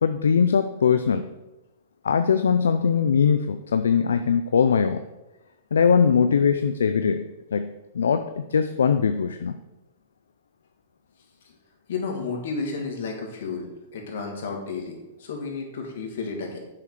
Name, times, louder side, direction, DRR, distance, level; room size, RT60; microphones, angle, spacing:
voice 1, 0.0-1.2 2.0-5.0 5.7-9.5, left 6 dB, 90° left, 9 dB, 0.4 m, -21 dB
voice 2, 11.9-16.6, left 4 dB, 70° left, 1 dB, 2.3 m, -32 dB
7.6 x 5.9 x 4.8 m, 1.0 s
hypercardioid pair, 125°, 0 cm